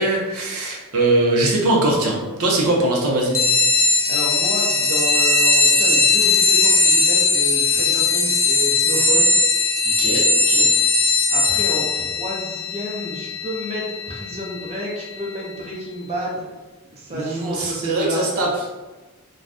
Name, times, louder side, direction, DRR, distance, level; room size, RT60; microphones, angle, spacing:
voice 1, 0.0-3.4 10.0-10.7 17.1-18.7, right 2 dB, 70° right, -2 dB, 0.7 m, -21 dB
sound 1, 3.3-15.4, left 3 dB, 15° left, 0.4 m, -19 dB
voice 2, 4.1-9.3 11.3-16.5 16.8-18.2, equal, 30° right, -4 dB, 0.6 m, -30 dB
2.5 x 2.3 x 3.4 m, 1.2 s
head